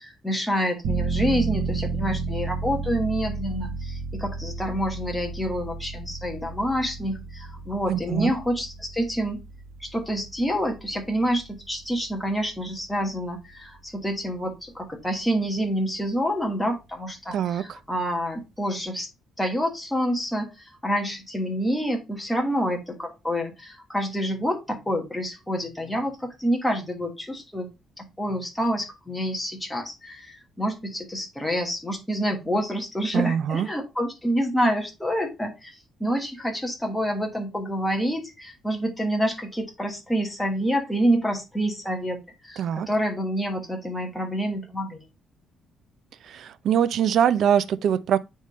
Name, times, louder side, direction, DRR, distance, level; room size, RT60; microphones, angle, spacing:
voice 1, 0.0-9.4 9.8-19.1 19.4-27.7 28.0-42.2 42.4-45.0, equal, 5° left, 1.4 m, -27 dB
sound 1, 0.8-13.3 13.7-13.8, right 4 dB, 75° right, 1.1 m, -33 dB
voice 2, 7.9-8.3 17.3-17.8 33.1-33.7 42.6-42.9 46.2-48.2, right 9 dB, 55° right, 0.5 m, -23 dB
9.1 x 3.6 x 3.1 m
cardioid pair, 155°, 0 cm